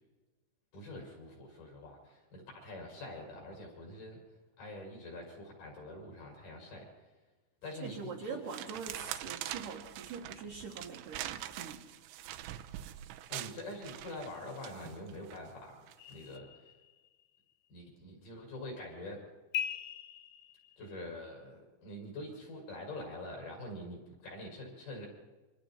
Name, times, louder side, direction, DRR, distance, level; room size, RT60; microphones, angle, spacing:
voice 1, 0.7-4.2 4.6-6.9 7.6-8.4 13.3-15.7 16.1-16.7 17.7-19.2 20.8-25.1, left 1 dB, 55° left, -1 dB, 7.8 m, -45 dB
sound 1, 7.7-8.0 8.5-15.4 15.9-16.1, right 13 dB, 80° right, 2.9 m, -44 dB
voice 2, 7.8-11.9, right 5 dB, 60° right, 1 dB, 2.5 m, -43 dB
sound 2, 16.0-17.2 19.5-21.0, left 10 dB, 85° left, 3.3 m, -41 dB
27.0 x 25.0 x 4.5 m, 1.2 s
omnidirectional pair, 5.2 m